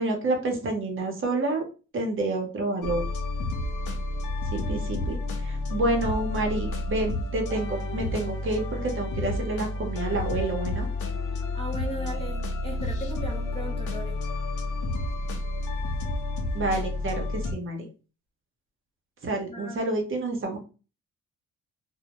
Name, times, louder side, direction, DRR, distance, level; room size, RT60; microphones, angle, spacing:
voice 1, 0.0-1.7 1.9-3.0 4.5-10.9 16.5-17.9 19.2-20.6, right 2 dB, 45° right, 2 dB, 0.8 m, -29 dB
sound 1, 2.8-17.5, left 2 dB, 85° left, 0.6 m, -30 dB
voice 2, 11.3-14.2 19.5-19.9, right 1 dB, 20° left, 1 dB, 0.7 m, -37 dB
2.1 x 2.1 x 2.8 m, 0.34 s
cardioid pair, 90°, 30 cm